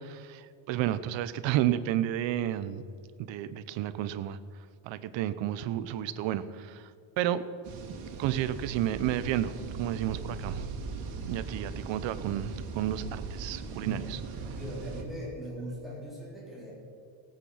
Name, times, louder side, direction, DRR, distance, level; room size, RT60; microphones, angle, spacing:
voice 1, 0.0-2.8 3.2-4.4 4.8-6.9 7.2-7.4 8.2-10.7 11.2-14.2 14.5-14.6, right 12 dB, 65° right, 14 dB, 0.9 m, -31 dB
sound 1, 7.6-15.0, right 4 dB, 80° right, 2.5 m, -39 dB
voice 2, 13.8-16.7, equal, ahead, -6 dB, 4.2 m, -40 dB
17.0 x 9.1 x 5.7 m, 2.4 s
cardioid pair, 165°, 49 cm